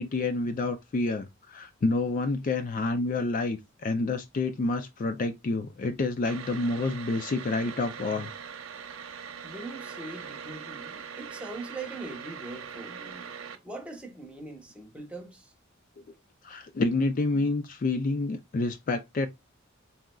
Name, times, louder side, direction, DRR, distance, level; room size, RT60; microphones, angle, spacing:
voice 1, 0.0-8.3 16.4-19.3, left 3 dB, 40° left, 0.4 m, -28 dB
sound 1, 6.2-13.6, right 7 dB, 85° right, 0.8 m, -41 dB
voice 2, 9.4-13.3 13.6-15.5, right 2 dB, 5° right, 1.0 m, -41 dB
4.1 x 3.7 x 2.3 m
head